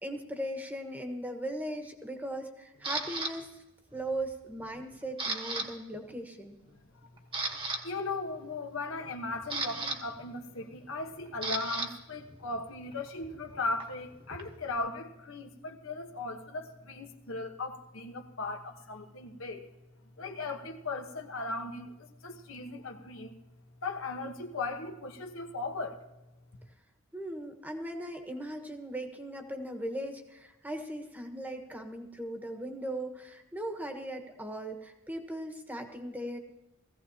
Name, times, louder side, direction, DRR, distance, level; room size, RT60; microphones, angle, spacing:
voice 1, 0.0-3.6 3.9-6.6 27.1-36.4, right 1 dB, 10° right, 5 dB, 1.3 m, -38 dB
Camera, 2.8-3.3 3.9-4.3 4.6-5.7 5.9-6.1 6.7-6.8 7.2-7.8 9.0-11.9 12.2-14.8, right 3 dB, 25° right, 1.3 m, -36 dB
voice 2, 7.8-19.6 20.2-23.3 23.8-26.0, left 3 dB, 75° left, 4 dB, 1.3 m, -37 dB
19.5 x 15.5 x 2.9 m, 0.98 s
head